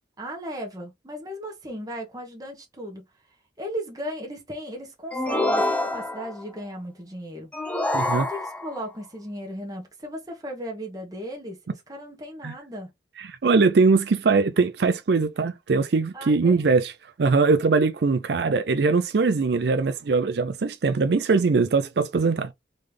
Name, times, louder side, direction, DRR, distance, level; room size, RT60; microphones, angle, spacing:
voice 1, 0.2-3.0 3.6-7.5 8.0-12.9 16.1-16.7, equal, 20° right, 1.3 m, -36 dB
sound 1, 5.1-6.4 7.5-8.8, left 1 dB, 10° left, 0.5 m, -26 dB
voice 2, 7.9-8.3 12.4-12.5 13.2-16.9 17.2-22.5, right 4 dB, 60° right, 0.4 m, -21 dB
3.8 x 3.2 x 3.4 m
head